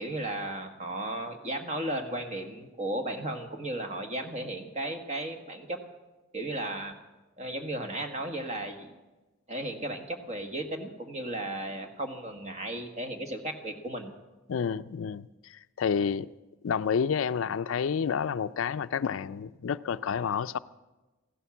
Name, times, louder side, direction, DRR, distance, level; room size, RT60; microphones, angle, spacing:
voice 1, 0.0-5.8 6.3-6.9 7.4-8.9 9.5-14.1, right 1 dB, 35° right, 1.5 m, -35 dB
voice 2, 14.5-16.3 16.6-20.6, left 6 dB, 65° left, 0.4 m, -29 dB
15.0 x 12.5 x 7.2 m
head